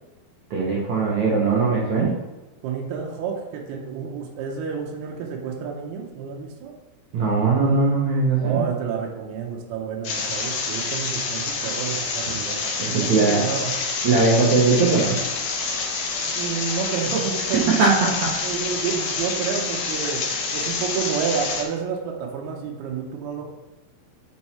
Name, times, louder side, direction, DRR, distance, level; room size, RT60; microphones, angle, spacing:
voice 1, 0.5-2.1 7.1-8.6 12.8-13.4 14.0-15.2 17.8-17.9, right 4 dB, 70° right, -4 dB, 1.8 m, -20 dB
voice 2, 2.6-6.7 8.4-13.7 16.3-17.7 18.4-20.3 20.5-23.5, right 6 dB, 85° right, 0 dB, 2.7 m, -29 dB
sound 1, 10.0-21.6, left 4 dB, 80° left, 1.6 m, -27 dB
6.0 x 5.5 x 4.2 m, 1.0 s
omnidirectional pair, 4.5 m